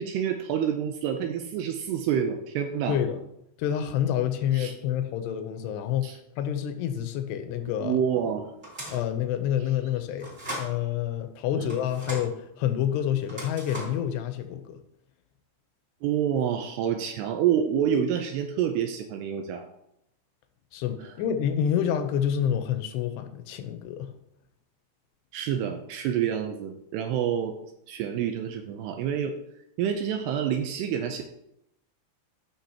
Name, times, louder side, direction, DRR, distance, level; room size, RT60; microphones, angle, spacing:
voice 1, 0.0-3.0 4.5-4.7 6.0-6.2 7.8-8.5 11.6-11.7 16.0-19.7 25.3-27.5 27.9-29.3 29.8-31.2, right 8 dB, 80° right, 5 dB, 2.6 m, -27 dB
voice 2, 2.9-3.2 3.6-6.1 6.4-8.0 8.9-10.3 10.6-14.8 20.7-24.1, left 9 dB, 80° left, 7 dB, 2.8 m, -28 dB
sound 1, 8.6-9.1 10.2-10.7 11.7-12.3 13.2-14.0, equal, 20° right, 2.6 m, -37 dB
15.0 x 6.0 x 2.9 m, 0.79 s
omnidirectional pair, 5.0 m